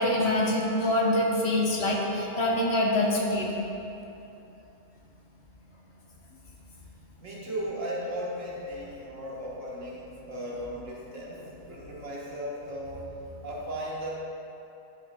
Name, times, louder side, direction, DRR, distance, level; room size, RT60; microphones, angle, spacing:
voice 1, 0.0-3.5, left 1 dB, 60° left, -2 dB, 1.1 m, -25 dB
voice 2, 7.2-13.0 13.4-14.1, equal, 75° right, -6 dB, 1.7 m, -36 dB
11.0 x 5.6 x 2.3 m, 2.9 s
omnidirectional pair, 1.3 m